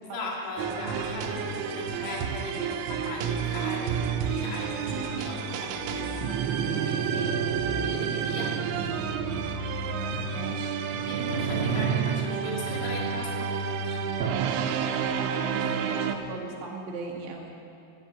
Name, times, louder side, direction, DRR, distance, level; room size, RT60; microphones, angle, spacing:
voice 1, 0.0-7.4 7.8-9.0 11.0-14.1, left 2 dB, 80° left, -3 dB, 5.0 m, -38 dB
sound 1, 0.6-16.2, right 7 dB, 90° right, 3.4 m, -29 dB
sound 2, 5.6-6.6 7.4-13.4, left 4 dB, 45° left, 5.8 m, -45 dB
voice 2, 10.3-10.8 15.0-17.5, right 3 dB, 70° right, -1 dB, 3.7 m, -38 dB
12.5 x 12.5 x 8.9 m, 2.5 s
omnidirectional pair, 5.5 m